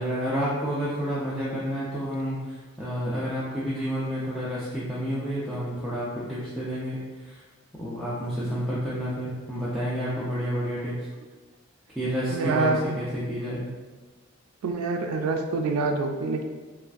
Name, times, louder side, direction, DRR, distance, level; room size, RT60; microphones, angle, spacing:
voice 1, 0.0-7.4 7.7-10.9 11.9-12.7 13.0-13.6, equal, ahead, -10 dB, 0.4 m, -30 dB
voice 2, 12.3-13.0 14.6-16.4, right 3 dB, 90° right, 5 dB, 0.3 m, -26 dB
3.1 x 2.4 x 2.4 m, 1.3 s
head